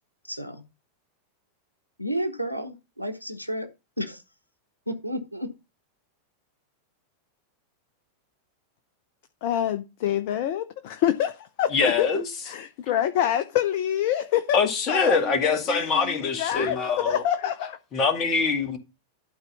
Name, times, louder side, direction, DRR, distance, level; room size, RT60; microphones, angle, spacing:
voice 1, 0.2-0.6 2.0-3.7 4.0-4.2 4.9-5.5, equal, 90° left, 1.0 m, -31 dB
voice 2, 9.4-14.6 14.9-17.8, left 10 dB, 50° left, 0.8 m, -26 dB
voice 3, 11.7-12.2 14.5-17.2 17.9-18.8, left 4 dB, 30° left, 2.2 m, -24 dB
12.0 x 4.5 x 5.3 m
figure-of-eight pair, 90°, 0 cm